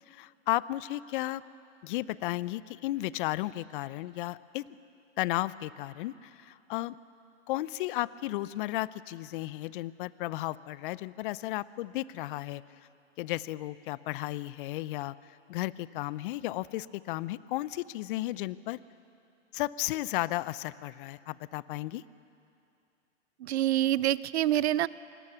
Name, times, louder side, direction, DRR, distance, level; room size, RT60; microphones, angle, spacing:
voice 1, 0.1-1.4 1.8-4.6 5.2-7.0 7.5-12.6 13.2-15.1 15.5-18.8 19.5-22.0, left 17 dB, 45° left, 19 dB, 0.6 m, -34 dB
voice 2, 23.4-24.9, right 13 dB, 65° right, 19 dB, 0.7 m, -26 dB
25.5 x 19.5 x 7.0 m, 2.6 s
hypercardioid pair, 115°, 35 cm